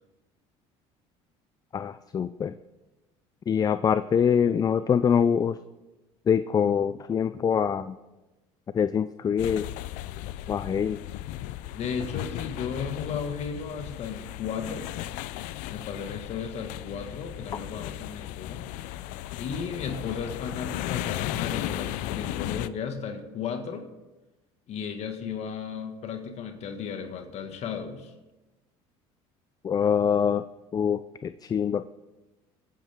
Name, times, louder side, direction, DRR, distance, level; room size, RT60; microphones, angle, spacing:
voice 1, 1.7-2.5 3.5-5.6 6.3-8.0 8.7-9.7 10.5-11.0 29.6-30.4 30.7-31.9, left 7 dB, 30° left, 13 dB, 0.5 m, -24 dB
sound 1, 9.4-22.7, left 14 dB, 75° left, 0.6 m, -35 dB
voice 2, 11.7-14.9 15.7-19.0 19.4-23.9 24.7-28.1, left 6 dB, 55° left, 6 dB, 1.9 m, -35 dB
24.5 x 9.9 x 3.7 m, 1.1 s
supercardioid pair, 100°, 13 cm